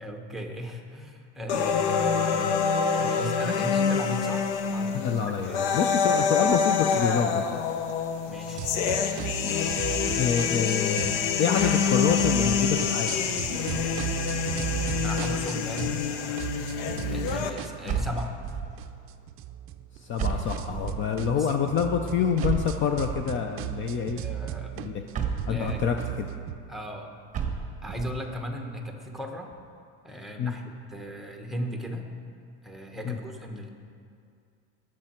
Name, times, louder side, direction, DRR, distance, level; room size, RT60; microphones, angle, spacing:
voice 1, 0.0-2.5 2.9-5.2 5.5-5.6 8.3-8.7 15.0-16.8 17.1-18.3 21.4-21.5 24.1-24.9 25.5-25.8 26.7-27.1 27.8-29.5 30.0-30.6 30.9-32.1 32.6-33.7, equal, ahead, 2 dB, 1.1 m, -37 dB
sound 1, 1.5-17.5, left 6 dB, 90° left, 1.1 m, -26 dB
voice 2, 4.9-7.6 10.2-13.2 17.8-18.0 20.0-24.2 24.8-25.0 25.5-26.3 30.4-30.5 33.0-33.2, left 7 dB, 35° left, 5 dB, 0.6 m, -27 dB
sound 2, 8.6-11.2 11.5-16.1 16.4-26.6, right 11 dB, 40° right, 0.5 m, -36 dB
sound 3, 17.9-18.8 20.2-21.1 22.4-23.4 25.1-26.0 27.3-28.2, right 6 dB, 20° right, 1.1 m, -31 dB
20.5 x 7.6 x 4.5 m, 2.4 s
cardioid pair, 145°, 34 cm